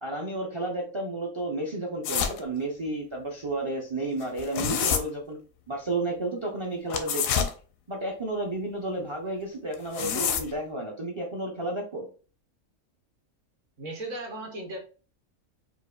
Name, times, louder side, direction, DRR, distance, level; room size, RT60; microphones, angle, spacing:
voice 1, 0.0-5.4 5.7-7.5 7.9-12.1, right 2 dB, 45° right, 0 dB, 0.3 m, -32 dB
sound 1, 2.0-2.4 4.2-5.0 6.9-7.5 9.7-10.5, left 7 dB, 80° left, 1.0 m, -27 dB
voice 2, 13.8-14.8, right 1 dB, 70° right, 2 dB, 1.4 m, -36 dB
4.8 x 2.4 x 2.3 m, 0.36 s
omnidirectional pair, 1.4 m